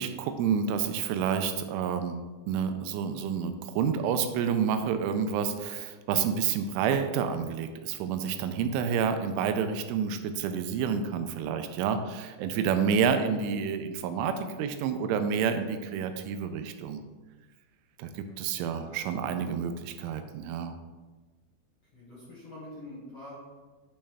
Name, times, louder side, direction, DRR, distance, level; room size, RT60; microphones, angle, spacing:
voice 1, 0.0-2.2 2.5-17.0 18.0-20.8, right 7 dB, 85° right, 8 dB, 3.0 m, -29 dB
voice 2, 18.3-18.7 21.9-23.4, left 1 dB, 50° left, -9 dB, 2.0 m, -46 dB
9.8 x 5.4 x 3.4 m, 1.3 s
omnidirectional pair, 5.5 m